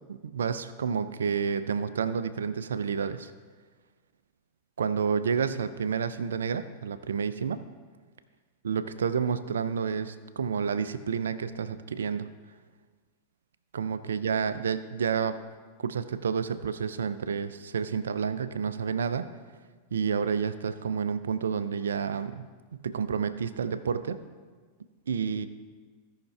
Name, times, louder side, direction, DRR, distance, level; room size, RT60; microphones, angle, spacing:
voice 1, 0.1-3.3 4.8-7.6 8.6-12.3 13.7-15.4 15.8-19.3 19.9-22.5 22.8-24.2 25.1-25.5, right 6 dB, 65° right, 13 dB, 0.5 m, -30 dB
16.5 x 5.7 x 3.4 m, 1.5 s
figure-of-eight pair, 90°, 0 cm